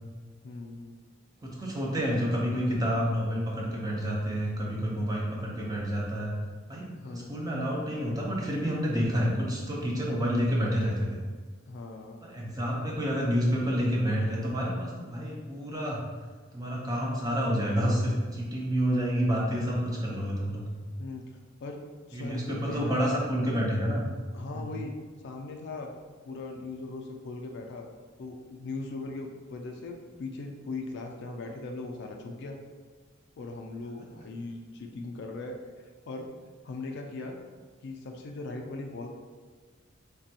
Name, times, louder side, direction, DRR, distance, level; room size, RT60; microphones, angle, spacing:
voice 1, 0.4-1.0 7.0-7.4 11.7-12.2 21.0-21.3 21.6-21.8 22.1-23.1 24.3-24.9 25.2-25.9 26.3-27.9 28.2-32.6 33.4-35.6 36.1-36.3 36.6-37.4 37.8-39.1, left 3 dB, 55° left, 3 dB, 0.3 m, -39 dB
voice 2, 1.4-6.3 6.7-11.2 12.2-16.0 16.5-20.7 22.1-24.1 24.5-24.8, equal, 20° right, -3 dB, 0.5 m, -29 dB
3.3 x 2.2 x 2.7 m, 1.4 s
head